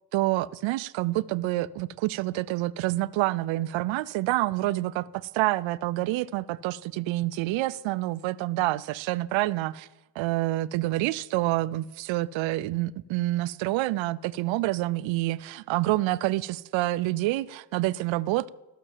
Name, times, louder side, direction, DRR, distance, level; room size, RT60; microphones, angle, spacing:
voice 1, 0.1-9.9 10.2-18.5, right 17 dB, 75° right, 0.5 m, -27 dB
13.0 x 6.7 x 7.4 m
cardioid pair, 145°, 46 cm